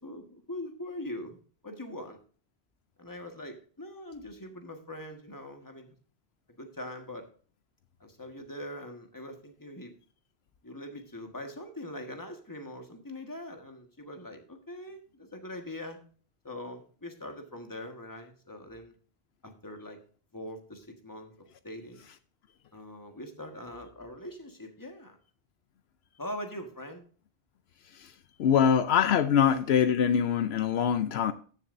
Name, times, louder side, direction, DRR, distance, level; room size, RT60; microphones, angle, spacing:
voice 1, 0.0-1.4 1.6-2.2 3.0-6.0 6.6-7.3 8.0-9.9 10.6-16.0 16.4-18.9 19.4-20.0 20.3-21.3 21.6-22.0 22.7-25.2 26.2-27.0, left 1 dB, 20° left, 1.6 m, -42 dB
voice 2, 28.4-31.3, left 8 dB, 75° left, 0.9 m, -23 dB
14.5 x 7.1 x 2.6 m
omnidirectional pair, 1.1 m